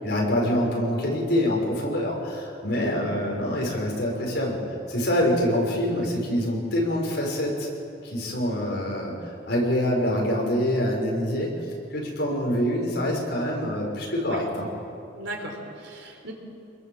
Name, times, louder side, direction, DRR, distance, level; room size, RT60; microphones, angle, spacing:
voice 1, 0.0-4.6 4.9-7.7 8.0-11.5 11.9-14.7, equal, 60° left, -2 dB, 6.4 m, -25 dB
voice 2, 5.8-6.2 14.3-14.4 15.1-16.3, right 1 dB, 80° right, 2 dB, 4.3 m, -37 dB
26.5 x 22.0 x 7.5 m, 2.6 s
head